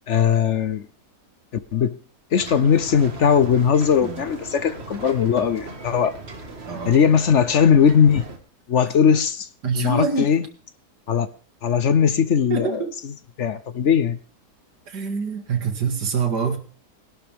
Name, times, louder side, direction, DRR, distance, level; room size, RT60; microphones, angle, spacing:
voice 1, 0.1-0.8 1.7-2.0 2.3-6.1 6.8-8.3 8.7-9.5 9.8-10.4 11.1-11.3 11.6-12.8 13.4-14.2, left 7 dB, 55° left, 1.0 m, -19 dB
sound 1, 2.4-8.4, right 3 dB, 40° right, 2.0 m, -38 dB
voice 2, 6.7-7.0 9.6-10.3 12.5-12.9 14.9-16.6, right 6 dB, 80° right, 2.6 m, -25 dB
20.5 x 11.5 x 3.5 m
omnidirectional pair, 1.8 m